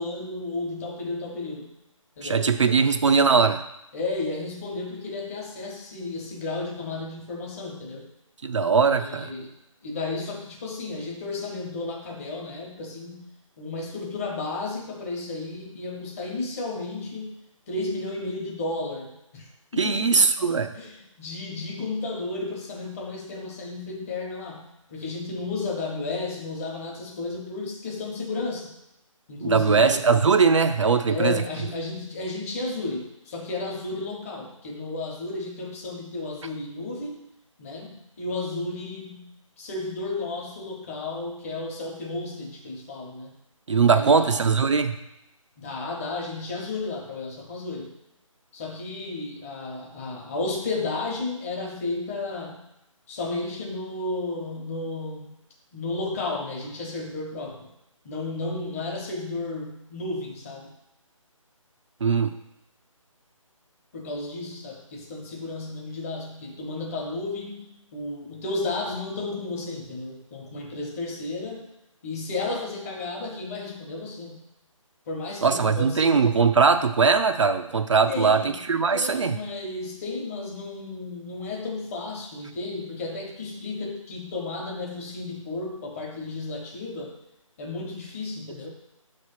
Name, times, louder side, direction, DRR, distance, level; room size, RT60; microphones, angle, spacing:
voice 1, 0.0-1.7 2.2-2.5 2.7-3.0 3.9-8.1 8.8-9.5 9.8-13.2 13.6-17.3 17.7-20.2 20.7-28.7 29.3-30.1 31.0-37.2 37.6-39.3 39.6-43.3 43.9-44.4 45.6-47.9 48.5-52.6 53.1-55.4 55.7-57.7 58.0-60.7 63.9-71.7 72.0-74.4 75.1-76.3 78.1-78.6 78.9-87.2 87.6-88.7, left 3 dB, 25° left, 0 dB, 1.1 m, -33 dB
voice 2, 2.2-3.6 8.4-9.3 19.8-20.7 29.4-31.4 43.7-45.0 62.0-62.3 75.4-79.4, right 5 dB, 60° right, 7 dB, 0.5 m, -20 dB
6.4 x 3.3 x 5.7 m, 0.89 s
figure-of-eight pair, 150°, 17 cm